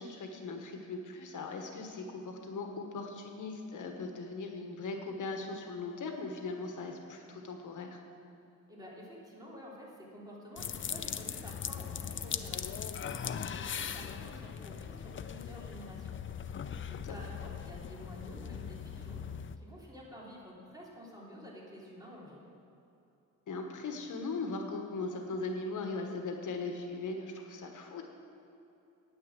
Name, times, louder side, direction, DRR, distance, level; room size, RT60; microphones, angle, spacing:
voice 1, 0.0-8.0 17.0-17.1 23.5-28.0, left 3 dB, 70° left, 3 dB, 1.3 m, -39 dB
voice 2, 8.7-16.2 16.8-19.2 19.5-22.5, equal, 10° right, -5 dB, 3.2 m, -50 dB
sound 1, 10.6-19.6, left 8 dB, 40° left, 0.5 m, -40 dB
9.6 x 9.1 x 7.5 m, 2.9 s
cardioid pair, 115°, 32 cm